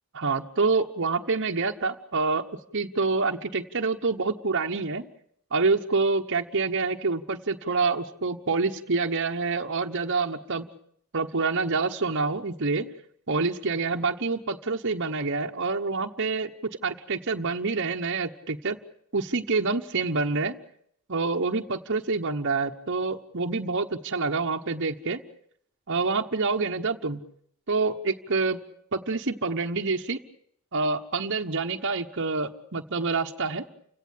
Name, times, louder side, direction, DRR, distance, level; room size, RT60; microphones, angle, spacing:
voice 1, 0.1-2.5 2.7-5.0 5.5-10.6 11.1-12.9 13.3-18.8 19.1-20.5 21.1-25.2 25.9-27.2 27.7-28.6 28.9-30.2 30.7-33.6, right 4 dB, 60° right, 3 dB, 1.2 m, -27 dB
29.5 x 17.5 x 8.4 m, 0.68 s
head